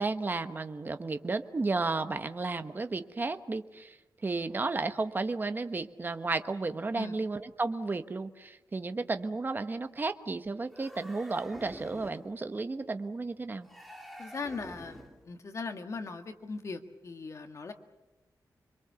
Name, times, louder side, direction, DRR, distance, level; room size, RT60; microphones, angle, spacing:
voice 1, 0.0-4.0 4.2-13.7, right 3 dB, 30° right, 9 dB, 1.1 m, -33 dB
sound 1, 10.7-12.3 13.6-15.3, equal, ahead, 2.6 m, -47 dB
voice 2, 14.2-15.0 15.2-17.7, left 4 dB, 45° left, 6 dB, 1.8 m, -39 dB
26.5 x 23.0 x 7.0 m, 1.0 s
wide cardioid pair, 150°, 7 cm